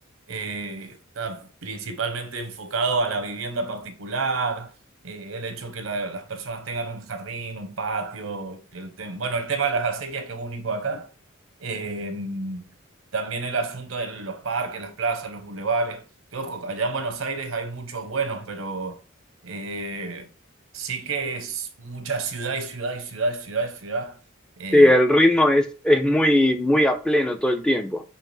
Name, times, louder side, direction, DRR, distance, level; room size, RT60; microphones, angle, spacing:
voice 1, 0.3-4.7 5.0-11.1 11.6-12.6 13.1-16.0 16.3-19.0 19.4-20.3 20.7-24.2 24.6-24.9, right 4 dB, 80° right, 0.9 m, -29 dB
voice 2, 24.7-28.0, left 1 dB, 5° left, 0.4 m, -18 dB
5.5 x 2.9 x 3.3 m
head